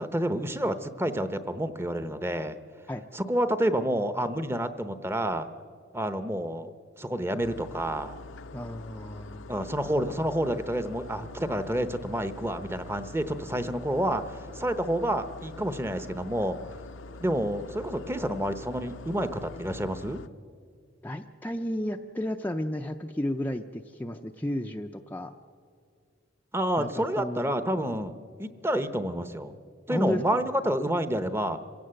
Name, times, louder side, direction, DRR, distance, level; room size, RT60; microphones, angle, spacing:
voice 1, 0.0-2.6 3.1-5.5 5.9-8.2 9.5-16.6 17.2-20.2 26.5-28.1 28.4-29.5 29.9-31.6, right 1 dB, 10° right, 11 dB, 0.8 m, -29 dB
sound 1, 7.4-20.3, left 2 dB, 70° left, 0.6 m, -45 dB
voice 2, 8.5-9.4 21.0-25.3 26.8-27.5 29.9-30.4, left 1 dB, 10° left, 3 dB, 0.5 m, -33 dB
26.0 x 16.5 x 7.7 m, 2.2 s
head